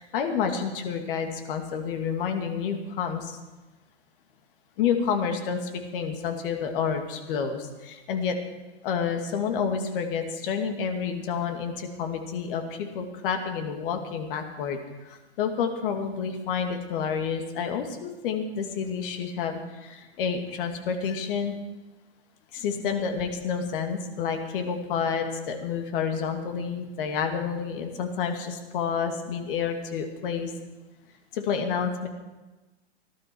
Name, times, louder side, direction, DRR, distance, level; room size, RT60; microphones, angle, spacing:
voice 1, 0.0-3.4 4.8-8.4 8.8-14.8 15.0-21.5 22.5-30.5 31.3-32.1, left 6 dB, 55° left, 5 dB, 2.4 m, -29 dB
18.5 x 12.0 x 4.7 m, 1.1 s
hypercardioid pair, 125°, 32 cm